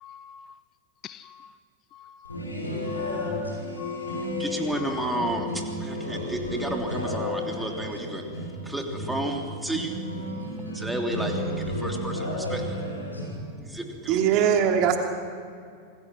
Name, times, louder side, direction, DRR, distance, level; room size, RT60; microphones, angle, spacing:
voice 1, 0.0-0.5 1.0-1.5 1.9-2.4 2.9-3.3 3.8-4.3 4.8-5.3, left 9 dB, 30° left, 15 dB, 0.6 m, -42 dB
sound 1, 2.2-13.4, left 1 dB, 85° left, 5.9 m, -32 dB
voice 2, 4.1-10.0 10.7-12.8 13.4-14.2, right 1 dB, 5° right, 2 dB, 3.0 m, -32 dB
voice 3, 14.1-15.0, right 8 dB, 40° right, 3 dB, 2.9 m, -21 dB
27.0 x 20.5 x 6.1 m, 2.3 s
figure-of-eight pair, 90°, 0 cm